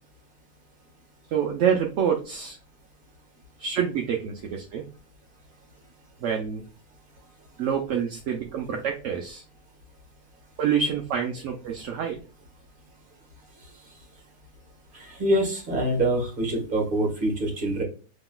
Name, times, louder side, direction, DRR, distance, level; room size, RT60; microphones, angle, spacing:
voice 1, 1.3-2.6 3.6-4.9 6.2-6.6 7.6-9.4 10.6-12.2, right 7 dB, 65° right, 2 dB, 0.8 m, -27 dB
voice 2, 14.9-17.8, right 1 dB, 35° right, 0 dB, 1.5 m, -25 dB
5.8 x 3.0 x 2.2 m, 0.37 s
omnidirectional pair, 1.6 m